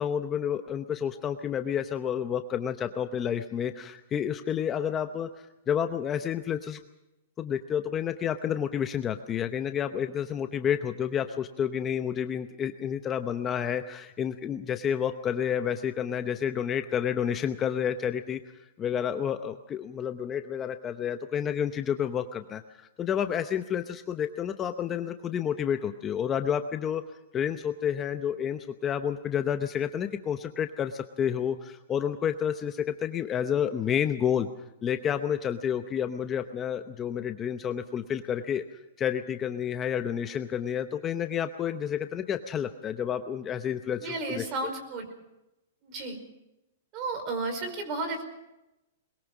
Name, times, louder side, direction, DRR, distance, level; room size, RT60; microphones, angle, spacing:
voice 1, 0.0-6.8 7.4-18.4 18.8-27.0 27.3-34.5 34.8-38.6 39.0-44.4, left 8 dB, 20° left, 7 dB, 0.8 m, -30 dB
voice 2, 44.0-45.1 45.8-46.2 46.9-48.2, right 3 dB, 35° right, 7 dB, 5.0 m, -33 dB
21.5 x 21.5 x 6.1 m, 0.94 s
hypercardioid pair, 155°, 0 cm